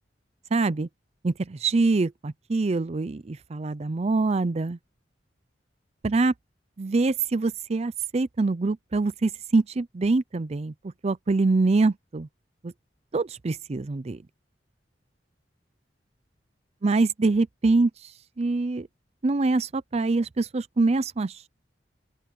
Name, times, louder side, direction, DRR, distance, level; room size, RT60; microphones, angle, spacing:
voice 1, 0.5-0.9 1.2-4.8 6.0-6.3 6.8-10.7 11.0-12.3 12.6-12.7 13.1-14.2 16.8-17.9 18.4-18.9 19.2-21.5, right 3 dB, 35° right, 0.5 m, -24 dB
open air
head